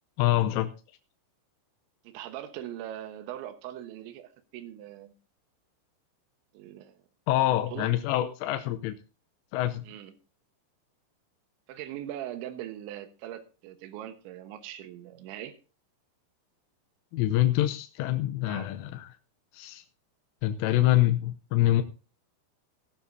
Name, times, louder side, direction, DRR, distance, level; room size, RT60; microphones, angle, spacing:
voice 1, 0.2-0.7 7.3-8.9 9.5-9.9 17.1-19.1 19.5-19.8 20.4-21.8, left 14 dB, 85° left, 7 dB, 3.3 m, -25 dB
voice 2, 2.0-5.1 6.5-7.0 7.7-7.9 9.8-10.1 11.7-15.5 18.4-18.7, right 12 dB, 75° right, 8 dB, 3.4 m, -41 dB
17.0 x 12.5 x 2.7 m, 0.34 s
omnidirectional pair, 5.6 m